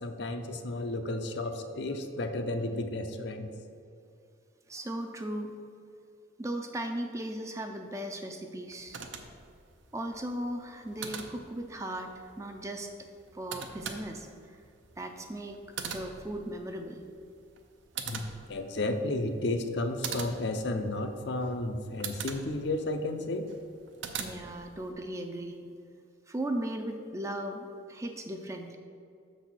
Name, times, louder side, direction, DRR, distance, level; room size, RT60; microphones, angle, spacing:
voice 1, 0.0-3.5 18.1-23.5, left 2 dB, 60° left, 7 dB, 0.5 m, -32 dB
voice 2, 4.7-5.6 6.4-9.0 9.9-12.9 13.3-14.6 15.0-15.6 15.8-17.0 24.2-25.7 26.3-28.8, right 1 dB, 15° right, 4 dB, 0.4 m, -37 dB
sound 1, 8.7-24.9, right 6 dB, 70° right, 0.6 m, -44 dB
6.6 x 4.1 x 6.1 m, 2.4 s
head